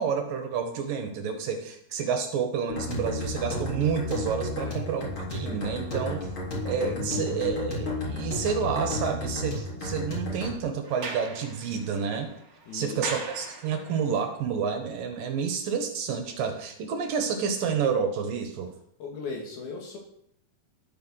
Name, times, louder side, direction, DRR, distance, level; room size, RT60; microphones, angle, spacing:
voice 1, 0.0-6.3 6.6-12.3 12.7-18.7, right 6 dB, 65° right, 6 dB, 2.9 m, -29 dB
sound 1, 2.7-10.5, left 2 dB, 35° left, 4.0 m, -32 dB
voice 2, 4.5-5.1 12.7-13.3 19.0-20.0, left 4 dB, 70° left, 0 dB, 4.0 m, -38 dB
Sliding door, 10.8-14.1, right 3 dB, 40° right, 2.4 m, -40 dB
13.0 x 9.4 x 6.4 m, 0.69 s
omnidirectional pair, 4.5 m